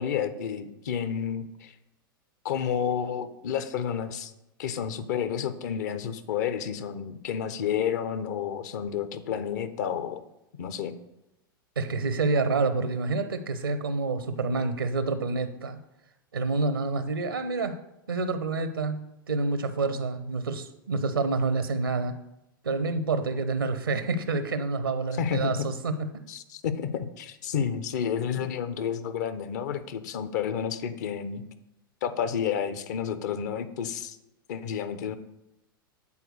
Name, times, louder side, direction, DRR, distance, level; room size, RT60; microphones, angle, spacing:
voice 1, 0.0-1.7 2.4-4.3 4.6-10.2 10.6-10.9 25.2-25.7 26.3-31.4 32.0-34.2 34.5-35.2, left 8 dB, 50° left, 11 dB, 0.8 m, -30 dB
voice 2, 11.8-15.8 16.3-17.8 18.1-22.1 22.6-26.2 28.4-28.5, right 3 dB, 75° right, 10 dB, 0.6 m, -28 dB
8.3 x 4.4 x 6.5 m, 0.89 s
figure-of-eight pair, 95°, 12 cm